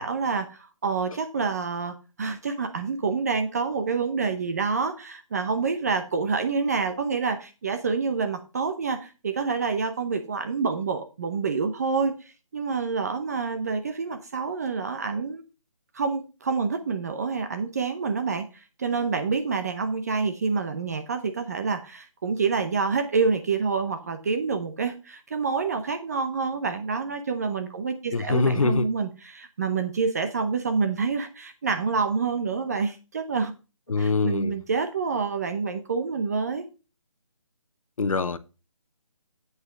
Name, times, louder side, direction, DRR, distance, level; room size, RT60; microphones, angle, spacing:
voice 1, 0.0-15.4 15.9-33.5 34.0-36.7, right 5 dB, 30° right, 0.7 m, -27 dB
voice 2, 28.1-28.9 33.9-34.5 38.0-38.4, left 4 dB, 80° left, 1.0 m, -24 dB
8.2 x 5.4 x 5.8 m
hypercardioid pair, 165°, 17 cm